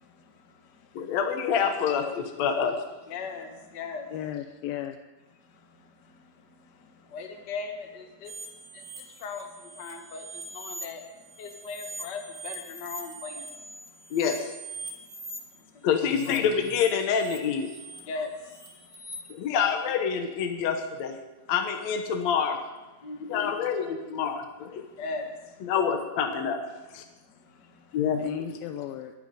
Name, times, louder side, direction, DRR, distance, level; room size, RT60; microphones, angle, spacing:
voice 1, 1.0-2.8 14.1-14.5 15.8-17.7 19.3-21.2 21.5-22.6 23.3-24.8 25.6-26.6 26.9-27.0 27.9-28.2, left 7 dB, 65° left, 5 dB, 1.9 m, -27 dB
voice 2, 3.1-3.5 3.7-4.0 7.1-8.3 9.2-9.4 9.8-10.2 10.5-11.0 11.4-13.4 15.9-16.4 18.1-18.3 23.0-23.4 25.0-25.3, left 4 dB, 45° left, 4 dB, 1.5 m, -37 dB
voice 3, 4.1-5.0 16.1-16.5 28.2-29.1, left 10 dB, 85° left, 7 dB, 2.5 m, -34 dB
sound 1, 8.2-10.8 11.2-15.4 15.9-19.1, right 2 dB, 45° right, 2.8 m, -43 dB
23.5 x 9.3 x 5.3 m, 1.2 s
omnidirectional pair, 4.2 m